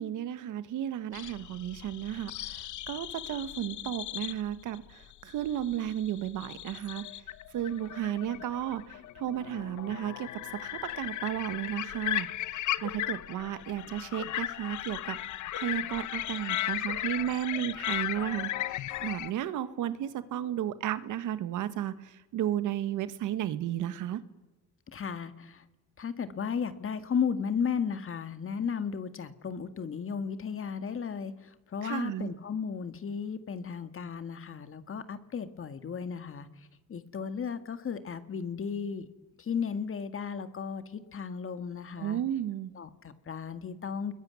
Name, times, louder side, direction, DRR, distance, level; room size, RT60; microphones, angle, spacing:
voice 1, 0.0-2.6 2.9-4.8 5.2-7.0 7.5-8.8 9.2-10.3 10.6-12.3 12.8-15.2 15.5-18.5 19.0-21.9 22.3-24.2 31.8-32.3 42.0-42.7, right 11 dB, 85° right, 12 dB, 1.5 m, -33 dB
sound 1, 1.1-19.3, left 13 dB, 75° left, 0.9 m, -36 dB
voice 2, 24.9-25.6 26.0-36.5 36.9-39.1 39.4-42.2 42.7-44.1, left 6 dB, 45° left, 10 dB, 2.0 m, -34 dB
28.0 x 21.5 x 9.7 m, 1.1 s
cardioid pair, 90°, 30 cm